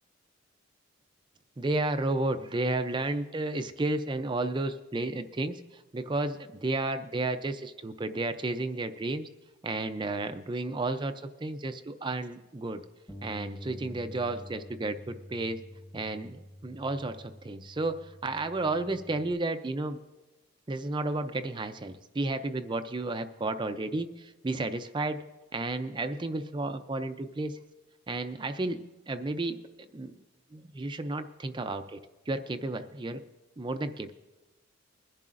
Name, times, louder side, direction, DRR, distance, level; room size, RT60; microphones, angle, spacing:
voice 1, 1.6-9.3 9.6-12.8 13.2-15.6 15.9-20.0 20.7-25.2 25.5-27.6 28.1-28.8 29.1-29.6 29.9-30.1 30.5-32.0 32.3-33.2 33.6-34.1, right 2 dB, 25° right, 9 dB, 0.4 m, -32 dB
Bass guitar, 13.1-19.3, equal, 15° left, 1.0 m, -47 dB
22.5 x 10.5 x 2.5 m, 1.1 s
head